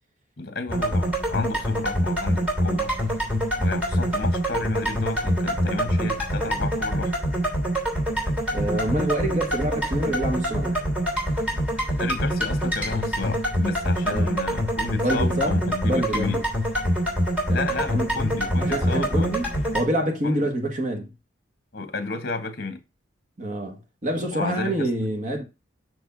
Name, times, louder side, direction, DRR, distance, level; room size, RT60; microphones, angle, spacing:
voice 1, 0.4-3.0 3.6-7.1 12.0-16.4 17.5-19.4 20.2-20.5 21.7-22.8 24.3-24.9, left 3 dB, 50° left, 1.4 m, -32 dB
sound 1, 0.7-19.8, equal, 5° right, 3.1 m, -25 dB
voice 2, 8.5-10.8 14.1-14.3 15.0-16.4 17.5-18.1 18.6-21.1 23.4-25.4, right 1 dB, 40° right, 1.5 m, -27 dB
6.5 x 4.7 x 5.3 m
head